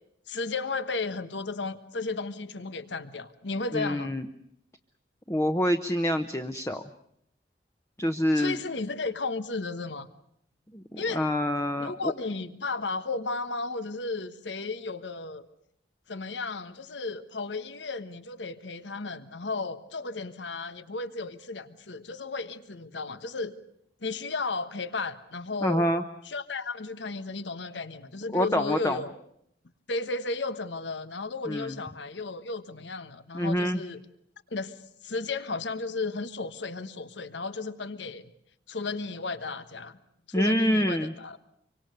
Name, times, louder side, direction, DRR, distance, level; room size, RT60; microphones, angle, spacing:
voice 1, 0.3-4.1 8.4-10.1 11.0-11.2 11.8-15.4 16.1-23.5 24.0-25.9 26.3-29.1 29.9-34.0 34.5-34.7 35.0-38.3 38.7-40.0 40.3-41.4, left 3 dB, 85° left, 12 dB, 1.4 m, -34 dB
voice 2, 3.7-4.3 5.3-6.8 8.0-8.6 10.7-12.1 25.6-26.0 28.3-29.0 31.5-31.8 33.3-33.8 40.3-41.1, equal, 15° left, 7 dB, 0.9 m, -26 dB
26.0 x 24.5 x 6.8 m, 0.72 s
head